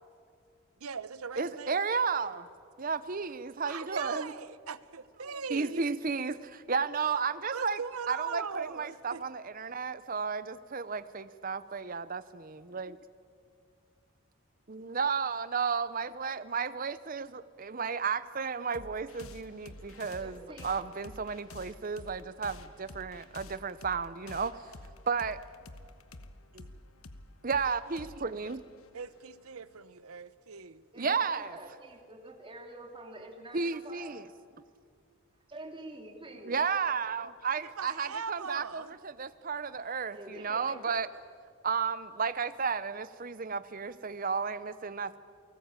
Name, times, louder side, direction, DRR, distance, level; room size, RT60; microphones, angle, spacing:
voice 1, 0.8-1.8 3.6-5.8 7.5-9.2 28.9-30.9 37.8-38.9, right 5 dB, 75° right, 0.8 m, -40 dB
voice 2, 1.4-2.5 2.8-4.3 5.5-7.8 8.1-13.0 14.7-24.6 25.1-25.4 26.5-26.7 27.4-28.6 31.0-31.6 33.5-34.3 36.4-41.1 41.6-45.2, right 5 dB, 40° right, 0.7 m, -33 dB
sound 1, 18.7-29.8, left 2 dB, 70° left, 1.2 m, -50 dB
voice 3, 20.2-20.7 30.9-34.1 35.5-36.6 40.1-40.8, right 2 dB, 25° right, 2.8 m, -47 dB
29.0 x 18.5 x 8.9 m
head